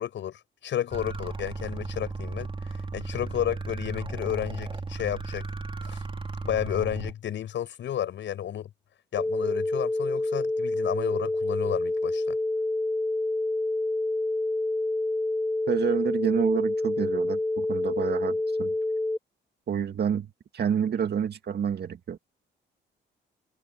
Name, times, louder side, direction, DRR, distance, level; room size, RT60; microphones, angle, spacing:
voice 1, 0.0-5.4 5.9-6.0 6.4-8.7 9.1-12.4, left 10 dB, 70° left, 7.6 m, -32 dB
sound 1, 0.9-7.1, right 3 dB, 25° right, 3.3 m, -35 dB
sound 2, 9.2-19.2, left 2 dB, 10° left, 2.3 m, -28 dB
voice 2, 15.7-18.7 19.7-20.3 20.5-22.2, right 8 dB, 55° right, 2.2 m, -28 dB
cardioid pair, 90°, 20 cm